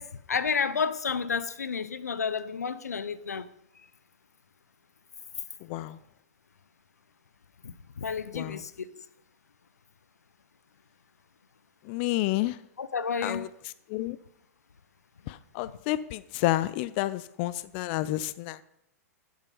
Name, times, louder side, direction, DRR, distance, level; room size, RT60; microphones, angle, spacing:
voice 1, 0.0-3.5 7.6-9.0 12.8-13.5, left 6 dB, 85° left, 0.6 m, -31 dB
voice 2, 11.9-12.6 13.2-13.5 13.9-14.2 15.3-18.6, left 16 dB, 45° left, 0.5 m, -30 dB
11.5 x 7.5 x 5.5 m
hypercardioid pair, 110°, 8 cm